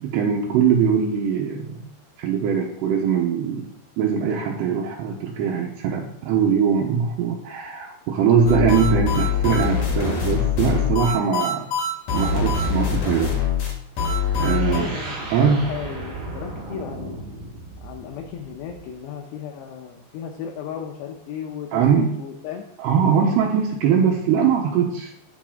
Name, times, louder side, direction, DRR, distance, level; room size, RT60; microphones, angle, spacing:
voice 1, 0.0-1.8 2.2-11.7 12.1-13.3 14.4-15.0 15.3-15.6 21.7-22.2 22.8-25.1, right 7 dB, 75° right, -2 dB, 2.9 m, -21 dB
sound 1, 8.5-14.8, left 6 dB, 55° left, 2.7 m, -23 dB
sound 2, 14.2-19.0, right 2 dB, 50° right, 1.5 m, -36 dB
voice 2, 14.5-17.2 17.8-22.7, left 8 dB, 75° left, 2 dB, 2.8 m, -35 dB
9.4 x 7.5 x 3.6 m, 0.78 s
omnidirectional pair, 5.3 m